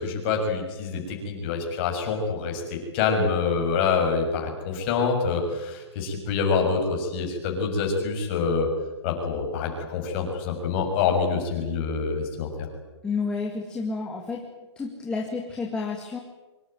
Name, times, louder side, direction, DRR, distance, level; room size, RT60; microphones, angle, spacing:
voice 1, 0.0-8.7 9.0-12.7, left 5 dB, 25° left, 2 dB, 6.6 m, -26 dB
voice 2, 13.0-14.4 14.8-16.2, left 4 dB, 5° left, -1 dB, 2.2 m, -30 dB
25.5 x 24.0 x 9.2 m, 1.1 s
hypercardioid pair, 175°, 15 cm